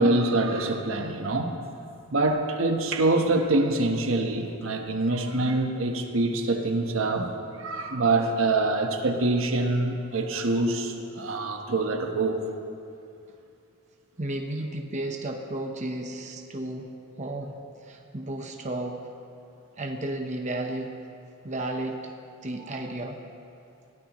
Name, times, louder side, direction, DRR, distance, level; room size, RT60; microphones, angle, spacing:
voice 1, 0.0-1.5 2.1-7.3 7.6-12.5, right 2 dB, 70° right, 4 dB, 1.1 m, -25 dB
voice 2, 14.2-16.9 17.2-19.0 19.8-21.0 21.4-22.1 22.4-23.2, right 1 dB, 35° right, 3 dB, 0.9 m, -33 dB
21.0 x 15.5 x 3.1 m, 2.5 s
head